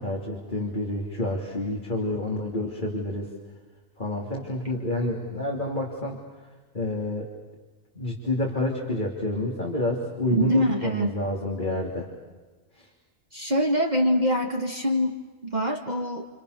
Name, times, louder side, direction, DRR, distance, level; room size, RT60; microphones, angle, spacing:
voice 1, 0.0-3.3 4.0-6.2 6.7-7.3 8.0-12.1 12.8-12.9, left 1 dB, 40° left, -1 dB, 3.5 m, -29 dB
voice 2, 10.4-11.1 13.3-16.2, equal, 35° right, 1 dB, 2.0 m, -24 dB
29.5 x 28.5 x 6.8 m, 1.3 s
omnidirectional pair, 1.3 m